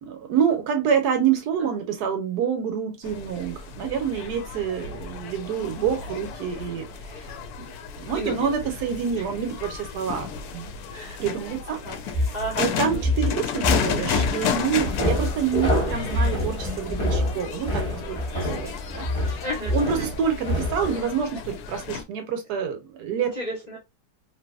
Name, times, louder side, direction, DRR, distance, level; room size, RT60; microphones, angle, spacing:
voice 1, 0.0-6.8 7.6-7.7 8.0-10.3 10.5-10.7 11.2-11.8 12.6-19.4 19.7-23.3, right 7 dB, 70° right, 1.1 m, -27 dB
sound 1, 3.0-22.0, left 6 dB, 70° left, 0.9 m, -33 dB
voice 2, 8.1-8.5 9.2-9.3 10.9-11.2 11.7-12.0 12.3-13.0 19.4-20.1 23.2-23.8, equal, 40° left, 0.6 m, -33 dB
sound 2, 12.1-20.2, left 1 dB, 5° right, 0.5 m, -27 dB
sound 3, 14.8-21.0, left 1 dB, 25° left, 0.9 m, -30 dB
2.8 x 2.6 x 2.2 m
omnidirectional pair, 1.9 m